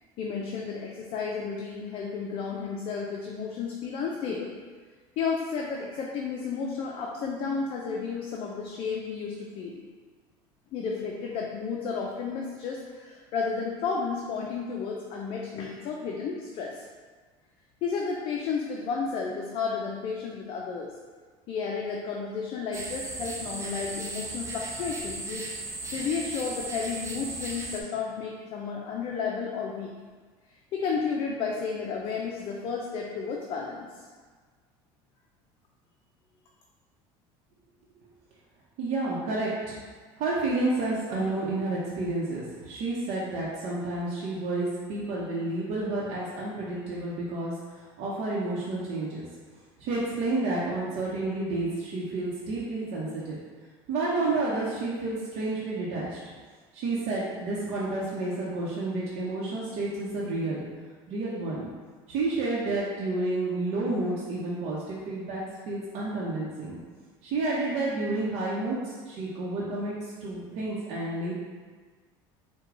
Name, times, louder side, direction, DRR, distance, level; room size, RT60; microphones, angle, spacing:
voice 1, 0.2-4.5 5.2-9.8 10.7-16.8 17.8-20.9 21.5-29.9 30.7-33.9, left 5 dB, 50° left, -1 dB, 0.5 m, -32 dB
sound 1, 22.7-27.8, right 3 dB, 25° right, 0.7 m, -36 dB
voice 2, 38.8-39.8 40.2-49.3 49.8-53.4 53.9-56.2 56.7-60.7 61.1-61.7 62.1-66.8 67.2-69.9 70.2-71.3, right 2 dB, 65° right, -7 dB, 0.8 m, -30 dB
4.7 x 2.2 x 3.7 m, 1.5 s
supercardioid pair, 110°, 12 cm